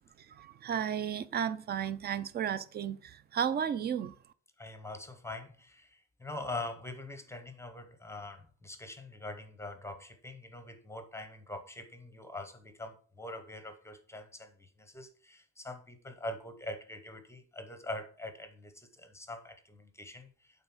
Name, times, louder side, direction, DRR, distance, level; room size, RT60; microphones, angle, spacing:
voice 1, 0.2-4.1, right 8 dB, 30° right, 0.4 m, -33 dB
voice 2, 4.6-20.3, left 2 dB, 10° left, 0.7 m, -43 dB
8.9 x 4.0 x 5.9 m
cardioid pair, 175°, 35 cm